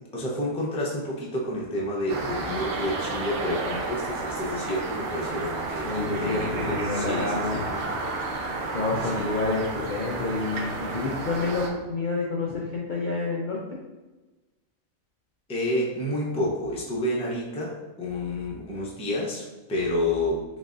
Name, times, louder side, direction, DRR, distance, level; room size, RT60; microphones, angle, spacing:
voice 1, 0.1-7.7 9.1-9.3 15.5-20.4, left 1 dB, 10° left, -3 dB, 0.4 m, -29 dB
sound 1, 2.1-11.7, right 3 dB, 60° right, 0.6 m, -31 dB
voice 2, 5.8-7.9 8.7-13.6, left 3 dB, 80° left, -3 dB, 0.4 m, -28 dB
3.9 x 3.4 x 2.5 m, 1.2 s
omnidirectional pair, 1.4 m